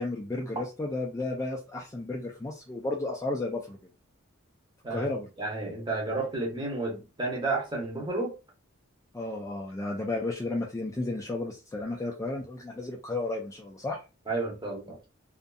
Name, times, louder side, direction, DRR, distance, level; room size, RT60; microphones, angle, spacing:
voice 1, 0.0-3.8 4.9-5.3 9.1-14.0, left 2 dB, 15° left, 0.3 m, -33 dB
voice 2, 5.4-8.4 14.3-15.0, right 3 dB, 20° right, 0.9 m, -31 dB
2.5 x 2.5 x 2.2 m
head